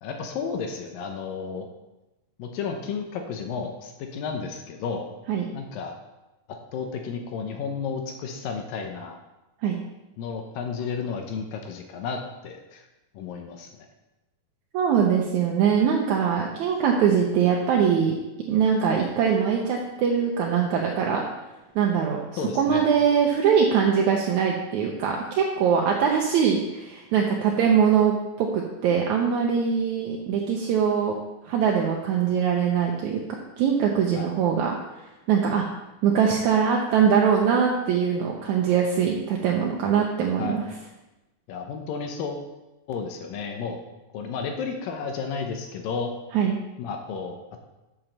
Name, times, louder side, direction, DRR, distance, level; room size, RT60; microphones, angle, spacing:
voice 1, 0.0-1.7 2.4-5.1 5.5-6.0 6.7-9.2 10.2-12.9 13.1-13.7 22.4-22.9 34.2-34.3 40.4-40.6 41.5-42.5 42.9-43.8 44.1-46.1 46.8-47.6, left 5 dB, 75° left, 4 dB, 2.5 m, -32 dB
voice 2, 14.7-18.1 18.5-21.2 21.8-22.2 22.6-31.2 31.5-34.8 35.3-35.7 36.0-40.6 46.3-46.6, right 7 dB, 75° right, 0 dB, 1.7 m, -22 dB
7.3 x 6.0 x 6.5 m, 1.0 s
omnidirectional pair, 4.2 m